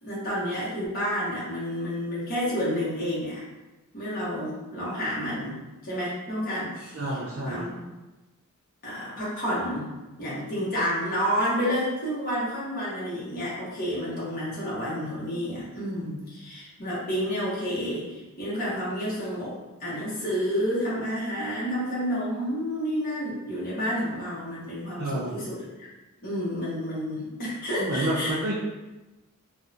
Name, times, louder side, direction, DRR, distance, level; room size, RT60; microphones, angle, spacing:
voice 1, 0.0-3.4 3.9-7.2 7.4-7.8 8.8-9.9 10.2-25.6 26.2-28.3, equal, 40° left, -8 dB, 0.8 m, -30 dB
voice 2, 6.9-7.7 25.0-25.4 27.8-28.5, right 1 dB, 55° right, -6 dB, 0.5 m, -29 dB
3.5 x 2.1 x 2.7 m, 1.1 s
head